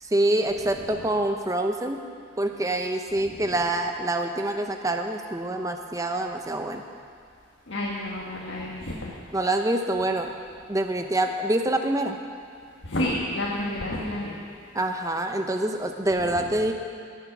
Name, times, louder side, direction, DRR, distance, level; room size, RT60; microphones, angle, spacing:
voice 1, 0.0-2.0 2.4-6.8 9.3-10.3 10.7-12.2 14.7-16.7, right 1 dB, 15° right, 5 dB, 0.8 m, -26 dB
voice 2, 3.2-3.5 7.7-9.1 12.8-14.4 16.2-16.4, left 1 dB, 70° left, -4 dB, 1.7 m, -30 dB
18.5 x 7.4 x 6.1 m, 2.3 s
head